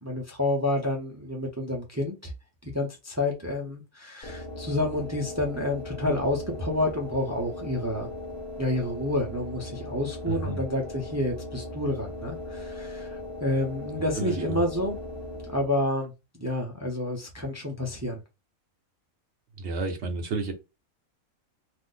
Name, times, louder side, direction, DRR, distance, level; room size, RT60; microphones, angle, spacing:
voice 1, 0.0-2.3 2.6-8.1 8.6-15.0 15.5-18.2, left 1 dB, 20° right, 0.4 m, -29 dB
sound 1, 4.2-15.9, left 1 dB, 30° left, 0.8 m, -38 dB
voice 2, 10.3-10.6 14.2-14.6 19.6-20.5, right 3 dB, 55° right, 1.0 m, -31 dB
2.6 x 2.5 x 3.7 m
omnidirectional pair, 1.5 m